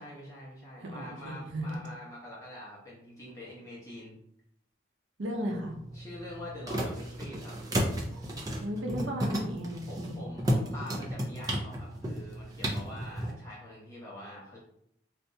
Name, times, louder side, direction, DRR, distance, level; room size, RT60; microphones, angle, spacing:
voice 1, 0.0-4.1 5.9-7.5 9.9-14.6, left 1 dB, 15° left, -6 dB, 1.1 m, -45 dB
voice 2, 0.8-1.9 5.2-5.8 8.6-10.3, equal, 80° right, 0 dB, 0.7 m, -35 dB
sound 1, 5.5-13.3, equal, 20° right, 0.4 m, -33 dB
3.3 x 2.6 x 2.7 m, 0.72 s
head